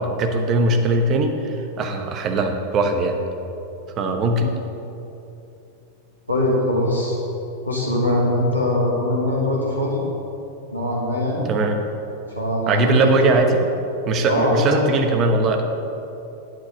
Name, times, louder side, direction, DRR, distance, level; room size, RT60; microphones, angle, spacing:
voice 1, 0.0-3.2 4.0-4.5 11.4-11.8 12.7-13.6 14.1-15.6, right 2 dB, 30° right, 4 dB, 1.0 m, -20 dB
voice 2, 6.3-7.2 7.6-10.0 10.7-11.4 12.3-13.4 14.3-14.9, left 1 dB, 85° right, -4 dB, 1.7 m, -21 dB
9.1 x 7.8 x 5.2 m, 2.9 s
figure-of-eight pair, 90°, 0 cm